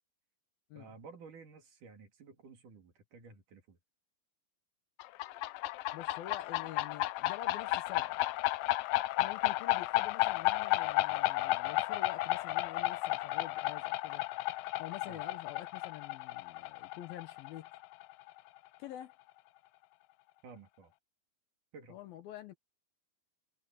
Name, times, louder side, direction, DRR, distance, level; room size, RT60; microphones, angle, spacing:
voice 1, 0.7-3.8 15.1-15.2 20.4-20.9 21.7-22.0, right 4 dB, 55° right, 3.8 m, -53 dB
sound 1, 5.0-18.4, left 18 dB, 90° left, 2.0 m, -33 dB
voice 2, 5.9-8.1 9.2-14.2 14.8-17.7 18.8-19.1 21.9-22.5, left 12 dB, 70° left, 2.6 m, -47 dB
omnidirectional pair, 4.8 m